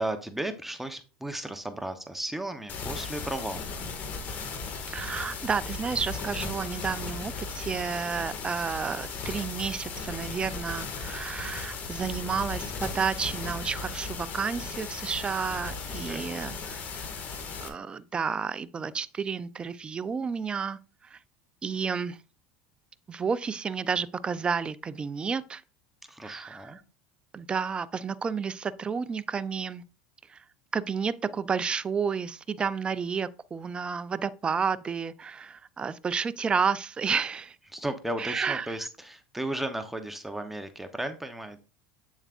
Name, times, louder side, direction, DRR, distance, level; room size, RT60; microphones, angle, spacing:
voice 1, 0.0-3.7 15.9-16.3 26.1-26.8 37.7-41.6, right 1 dB, 5° right, 0.8 m, -35 dB
sound 1, 2.7-17.7, left 4 dB, 40° left, 1.8 m, -36 dB
voice 2, 4.9-17.1 17.6-21.2 21.6-22.2 23.1-25.6 26.2-26.8 27.3-29.8 30.3-30.4 30.7-37.6 38.2-38.7, right 6 dB, 20° right, 0.5 m, -31 dB
8.2 x 7.2 x 2.5 m
supercardioid pair, 115°, 4 cm